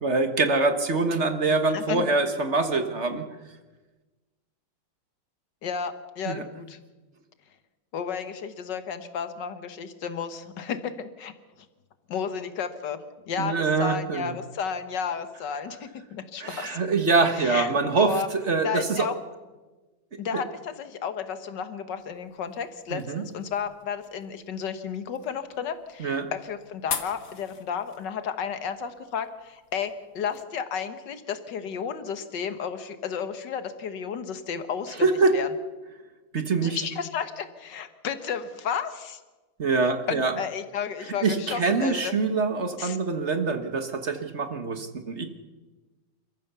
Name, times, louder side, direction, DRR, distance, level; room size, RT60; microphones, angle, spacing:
voice 1, 0.0-3.2 6.2-6.4 13.4-14.4 16.4-19.1 20.3-20.4 22.9-23.2 26.0-26.3 35.0-35.3 36.3-36.8 39.6-40.3 41.2-45.3, right 3 dB, 35° right, 7 dB, 1.6 m, -24 dB
voice 2, 1.7-2.1 5.6-6.8 7.9-11.3 12.1-13.0 13.3-16.8 17.4-17.7 18.0-18.3 18.6-19.1 20.2-35.1 35.3-35.5 36.6-39.2 40.1-42.1 42.8-43.0, left 7 dB, 60° left, 10 dB, 1.9 m, -32 dB
sound 1, 22.0-30.4, left 7 dB, 45° left, 1.5 m, -43 dB
28.0 x 14.5 x 6.9 m, 1.2 s
omnidirectional pair, 2.2 m